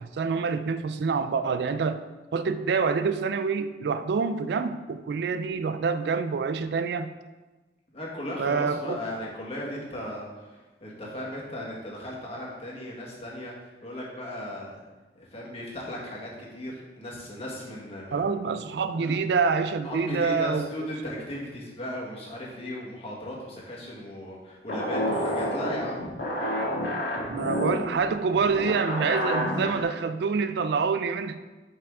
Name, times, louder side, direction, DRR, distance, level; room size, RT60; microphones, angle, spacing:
voice 1, 0.0-2.0 2.3-7.1 8.4-9.0 18.1-20.7 27.3-31.4, right 5 dB, 65° right, 11 dB, 0.4 m, -26 dB
voice 2, 7.9-14.8 15.1-18.3 18.9-19.2 19.8-26.0, equal, 35° left, -4 dB, 1.6 m, -36 dB
sound 1, 24.7-29.8, equal, 70° left, 2.0 m, -29 dB
5.8 x 4.8 x 4.7 m, 1.2 s
head